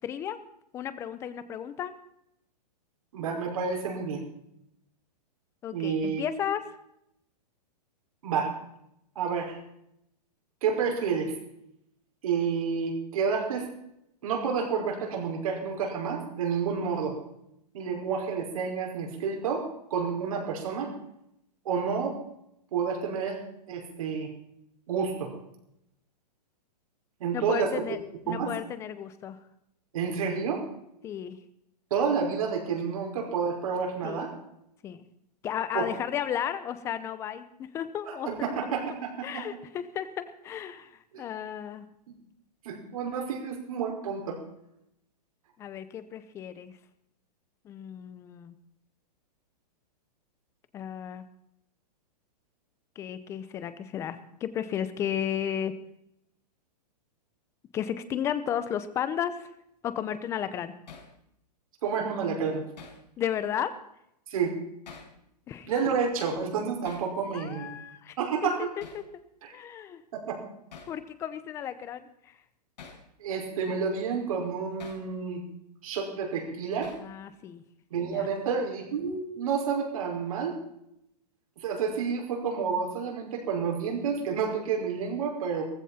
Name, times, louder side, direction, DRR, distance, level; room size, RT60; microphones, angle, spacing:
voice 1, 0.0-0.4 0.7-1.9 5.6-6.6 27.3-28.0 28.3-29.4 31.0-31.4 34.0-34.2 34.8-35.0 35.4-38.5 39.2-41.9 45.6-46.7 47.6-48.5 50.7-51.3 53.0-55.7 57.7-59.5 59.8-60.7 63.2-63.7 65.5-65.7 67.3-68.2 68.6-69.0 69.5-70.0 70.9-72.3 77.0-77.6 77.9-78.3, left 9 dB, 15° left, 12 dB, 0.7 m, -34 dB
voice 2, 3.1-4.2 5.7-6.2 8.2-8.5 9.2-9.6 10.6-11.3 12.2-13.7 14.2-17.2 17.7-20.9 21.7-22.2 22.7-23.4 23.7-24.3 24.9-25.3 27.2-27.7 28.3-28.5 29.9-30.6 31.9-34.3 35.7-35.9 38.1-39.4 41.1-41.2 42.6-44.4 61.8-62.6 64.3-64.6 65.7-67.7 68.2-68.7 70.1-70.4 73.2-75.4 75.8-76.9 77.9-80.5 81.6-85.6, right 6 dB, 55° right, 1 dB, 5.2 m, -29 dB
Hammer, 60.9-61.1 62.8-63.0 64.9-65.2 66.8-67.1 68.8-69.1 70.7-71.0 72.8-73.1 74.8-75.1 76.8-77.1, left 5 dB, 90° left, 5.8 m, -47 dB
18.0 x 15.5 x 4.3 m, 0.77 s
hypercardioid pair, 165°, 21 cm